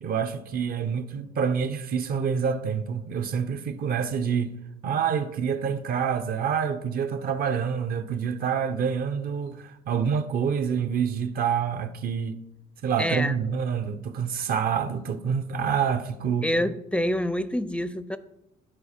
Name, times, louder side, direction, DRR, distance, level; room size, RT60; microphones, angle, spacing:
voice 1, 0.0-4.5 4.8-12.4 12.8-16.5, right 7 dB, 60° right, 0.7 m, -27 dB
voice 2, 13.0-13.4 16.4-18.2, equal, 5° left, 0.4 m, -26 dB
11.0 x 4.2 x 4.3 m
cardioid pair, 85°, 17 cm